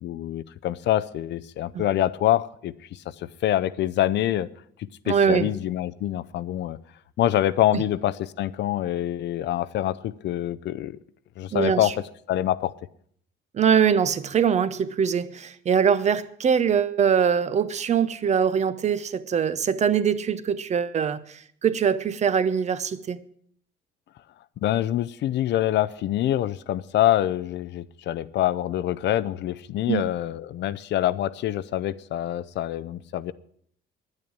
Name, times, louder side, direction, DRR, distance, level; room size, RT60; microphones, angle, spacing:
voice 1, 0.0-4.5 4.8-6.8 7.2-11.0 11.4-11.9 12.3-12.7 24.6-33.3, left 12 dB, 60° left, 15 dB, 0.5 m, -25 dB
voice 2, 5.1-5.5 7.7-7.8 11.5-11.9 13.5-23.2 29.9-30.1, right 7 dB, 35° right, 15 dB, 0.6 m, -23 dB
10.5 x 9.7 x 8.6 m, 0.63 s
cardioid pair, 170°, 21 cm